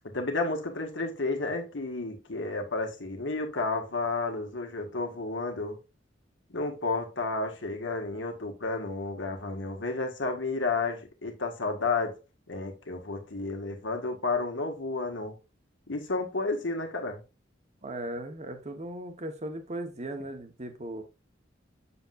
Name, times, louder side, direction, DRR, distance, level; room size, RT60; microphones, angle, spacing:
voice 1, 0.0-5.8 6.5-12.2 12.5-15.4 15.9-17.2, left 3 dB, 70° left, 1.7 m, -31 dB
voice 2, 17.8-21.0, right 1 dB, 35° right, 1.2 m, -37 dB
7.7 x 7.0 x 2.5 m
head